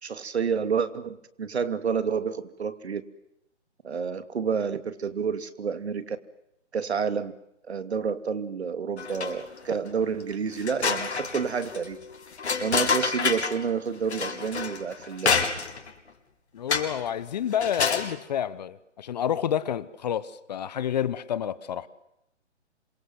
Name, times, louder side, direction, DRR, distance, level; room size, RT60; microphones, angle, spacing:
voice 1, 0.0-3.0 3.8-6.2 6.7-7.3 7.7-12.0 12.6-15.4, right 6 dB, 60° right, 2.8 m, -29 dB
sound 1, 9.0-9.6 10.0-10.1 10.5-13.6 14.1-15.9 16.7-17.1 17.5-18.1, left 5 dB, 65° left, 5.0 m, -28 dB
voice 2, 16.5-21.9, left 9 dB, 35° left, 1.2 m, -29 dB
27.0 x 23.0 x 7.9 m
figure-of-eight pair, 145°, 36 cm